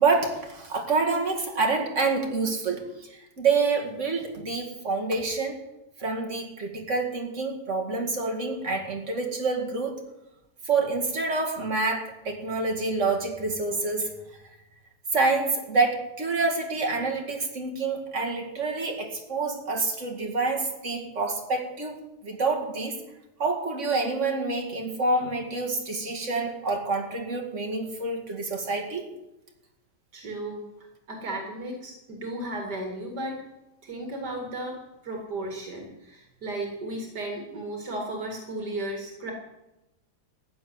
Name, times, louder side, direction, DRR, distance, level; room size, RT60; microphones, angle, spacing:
voice 1, 0.0-5.6 6.0-10.0 10.6-14.1 15.1-23.0 23.4-29.1, right 3 dB, 45° right, 2 dB, 2.5 m, -27 dB
voice 2, 30.1-33.4 33.8-39.3, right 1 dB, 75° right, 1 dB, 2.6 m, -35 dB
15.0 x 6.9 x 9.9 m, 0.96 s
omnidirectional pair, 1.8 m